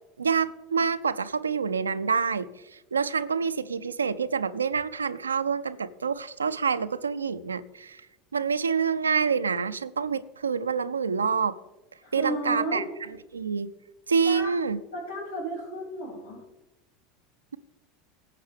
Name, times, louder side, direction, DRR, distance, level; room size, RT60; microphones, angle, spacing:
voice 1, 0.2-2.5 2.9-8.0 8.3-11.6 12.1-12.8 13.3-13.7 14.1-14.8, right 6 dB, 80° right, 13 dB, 0.4 m, -27 dB
voice 2, 12.0-12.8 14.2-14.6 14.9-16.4, right 1 dB, 85° left, -10 dB, 4.5 m, -33 dB
16.5 x 7.9 x 3.5 m, 0.99 s
figure-of-eight pair, 80°, 0 cm